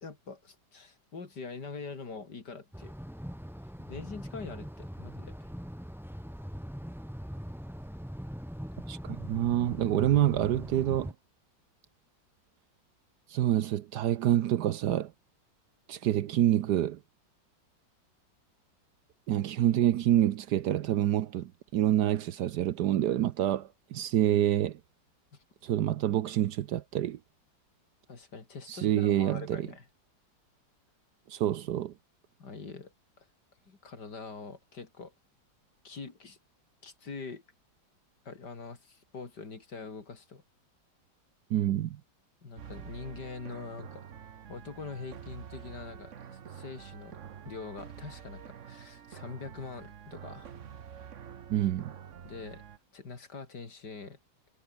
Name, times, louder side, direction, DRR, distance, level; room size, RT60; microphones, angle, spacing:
voice 1, 0.0-3.0 3.8-5.5 25.3-25.4 28.1-29.8 32.4-33.3 33.7-35.1 35.8-36.4 36.8-37.4 38.3-40.4 42.4-50.6 52.2-52.6 52.9-54.2, left 4 dB, 60° left, 3.6 m, -44 dB
sound 1, 2.7-11.1, equal, ahead, 2.3 m, -41 dB
voice 2, 8.9-11.1 13.3-15.1 15.9-17.0 19.3-24.8 25.6-27.2 28.7-29.7 31.3-31.9 41.5-42.0 51.5-52.0, right 12 dB, 65° right, 1.2 m, -27 dB
sound 2, 42.6-52.8, right 8 dB, 50° right, 1.2 m, -47 dB
omnidirectional pair, 2.0 m